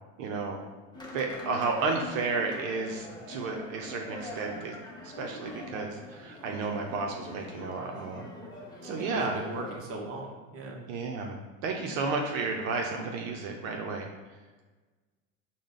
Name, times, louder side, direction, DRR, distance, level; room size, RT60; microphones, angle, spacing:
voice 1, 0.2-0.6 1.1-4.8 5.0-8.3 8.8-9.3 10.9-14.1, right 4 dB, 80° right, 2 dB, 0.6 m, -32 dB
sound 1, 0.9-9.8, left 1 dB, 10° left, 1.0 m, -44 dB
voice 2, 8.9-10.8, right 1 dB, 35° right, 0 dB, 0.9 m, -38 dB
4.8 x 2.2 x 3.7 m, 1.3 s
hypercardioid pair, 85°, 40 cm